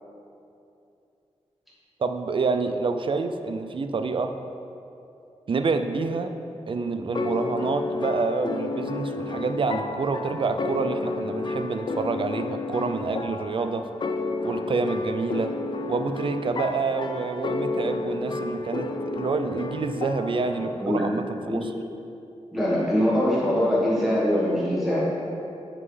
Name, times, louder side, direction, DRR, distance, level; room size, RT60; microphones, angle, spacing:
voice 1, 2.0-4.3 5.5-6.3 6.7-13.8 14.4-15.5 15.9-21.7, right 4 dB, 45° right, 7 dB, 0.4 m, -27 dB
sound 1, 7.1-20.9, left 3 dB, 40° left, 0.4 m, -31 dB
voice 2, 22.5-25.2, equal, ahead, -8 dB, 1.4 m, -23 dB
7.5 x 5.4 x 3.3 m, 2.7 s
cardioid pair, 70°, 12 cm